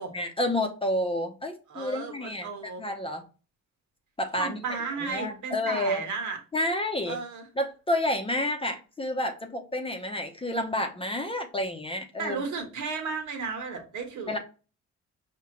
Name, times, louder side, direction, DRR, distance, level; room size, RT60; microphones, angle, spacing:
voice 1, 0.1-2.5 2.8-3.2 4.2-4.8 5.1-6.0 6.5-7.2 7.6-12.4 14.3-14.4, left 1 dB, 20° left, 0.7 m, -29 dB
voice 2, 1.7-2.8 4.3-6.4 7.1-7.4 12.2-14.4, right 4 dB, 70° right, 1.4 m, -34 dB
4.9 x 2.9 x 2.9 m
cardioid pair, 90°, 30 cm